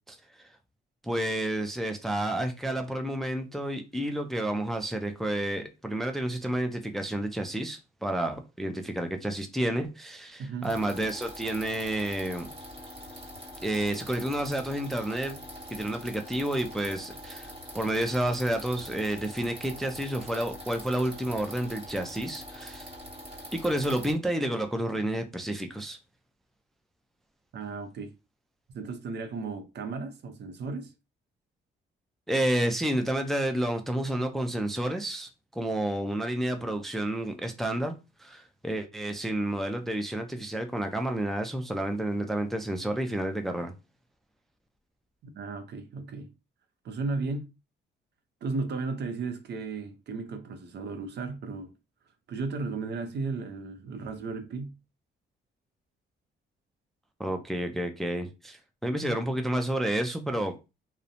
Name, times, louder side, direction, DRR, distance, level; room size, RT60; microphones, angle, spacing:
voice 1, 1.0-12.5 13.6-15.4 15.7-22.9 23.5-26.0 32.3-37.9 38.2-43.7 57.2-60.5, right 1 dB, ahead, 0.4 m, -30 dB
voice 2, 10.4-10.8 27.5-28.1 28.7-30.9 45.2-46.3 46.8-47.5 48.4-51.7 52.3-54.7, right 4 dB, 60° right, 0.6 m, -35 dB
sound 1, 10.6-24.1, equal, 25° right, 1.4 m, -44 dB
2.6 x 2.1 x 2.4 m
cardioid pair, 90°, 20 cm